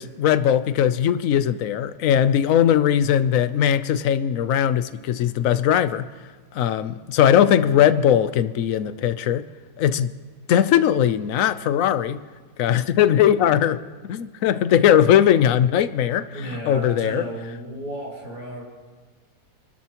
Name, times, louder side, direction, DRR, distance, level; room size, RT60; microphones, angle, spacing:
voice 1, 0.0-6.0 6.5-9.4 9.8-10.1 10.5-12.2 12.6-17.2, left 10 dB, 60° left, 1.0 m, -19 dB
voice 2, 16.3-18.6, equal, 80° right, 5.3 m, -33 dB
27.5 x 12.5 x 3.0 m
omnidirectional pair, 1.7 m